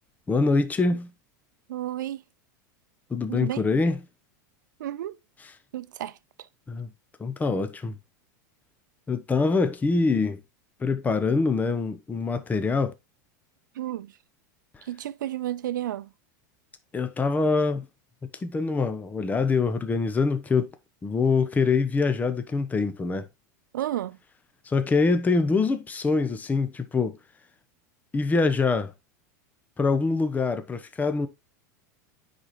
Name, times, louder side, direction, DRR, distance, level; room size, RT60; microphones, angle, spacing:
voice 1, 0.3-1.1 3.1-4.0 6.7-6.9 7.2-8.0 9.1-10.4 10.8-12.9 16.9-17.9 18.2-20.7 21.0-23.2 24.6-27.2 28.1-28.9 29.8-31.3, left 4 dB, 15° left, 0.9 m, -24 dB
voice 2, 1.7-2.2 3.3-3.6 4.8-5.2 5.7-6.2 13.8-14.1 14.9-16.1 23.7-24.2, right 13 dB, 85° right, 0.6 m, -31 dB
9.8 x 4.3 x 3.1 m
hypercardioid pair, 110°, 10 cm